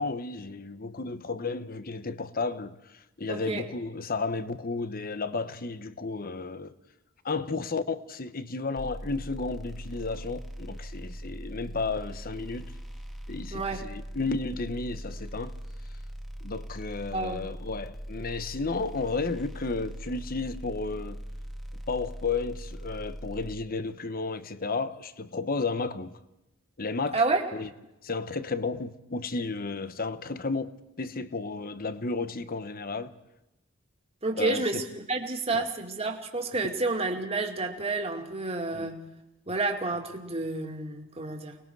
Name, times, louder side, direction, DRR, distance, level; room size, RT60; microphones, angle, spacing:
voice 1, 0.0-6.7 7.2-12.7 13.3-15.5 16.4-21.2 21.9-26.2 26.8-27.2 27.5-27.7 28.0-33.1 34.3-34.8 35.5-35.7 38.7-38.9, left 3 dB, 45° left, 1.0 m, -33 dB
voice 2, 3.3-3.6 13.5-13.9 17.1-17.4 27.1-27.5 34.2-39.1 39.5-41.6, right 3 dB, 30° right, 2.5 m, -30 dB
sound 1, 8.8-23.5, equal, ahead, 1.6 m, -40 dB
29.5 x 20.5 x 4.7 m
head